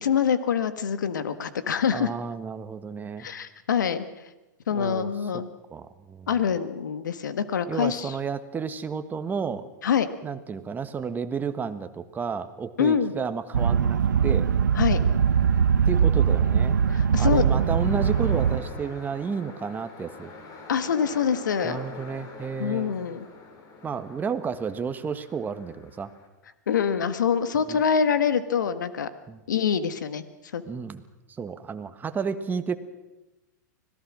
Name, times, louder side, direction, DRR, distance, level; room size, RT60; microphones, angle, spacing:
voice 1, 0.0-2.1 3.2-4.0 4.7-5.5 6.3-8.2 9.8-10.1 12.8-13.1 14.7-15.0 16.9-17.4 20.7-21.8 22.6-23.2 26.7-29.1 29.5-30.2 30.5-30.6, left 7 dB, 80° left, 12 dB, 1.5 m, -25 dB
voice 2, 1.9-3.3 4.7-5.4 5.7-6.3 7.7-9.7 10.2-14.5 15.8-16.8 17.2-20.3 21.6-23.0 23.8-26.1 27.7-27.8 29.3-29.4 30.7-31.0 31.4-32.8, right 6 dB, 20° right, 9 dB, 1.5 m, -32 dB
sound 1, 13.5-18.6, right 7 dB, 85° right, 1.2 m, -21 dB
sound 2, 14.9-26.3, left 3 dB, 35° left, 4.3 m, -46 dB
25.5 x 18.0 x 6.2 m, 1.0 s
hypercardioid pair, 110°, 10 cm